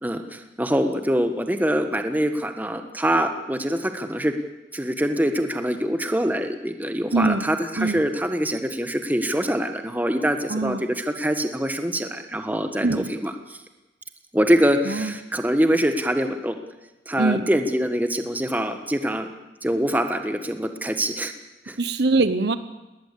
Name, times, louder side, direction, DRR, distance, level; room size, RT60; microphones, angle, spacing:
voice 1, 0.0-4.3 4.7-13.6 14.3-16.6 17.1-19.3 19.6-21.3 21.6-21.8, equal, 10° right, 7 dB, 1.5 m, -24 dB
voice 2, 7.1-7.5 7.8-8.0 10.5-10.8 12.8-13.1 14.9-15.1 17.2-17.4 21.8-22.6, right 3 dB, 65° right, 12 dB, 1.0 m, -22 dB
20.0 x 19.0 x 8.4 m, 1.1 s
head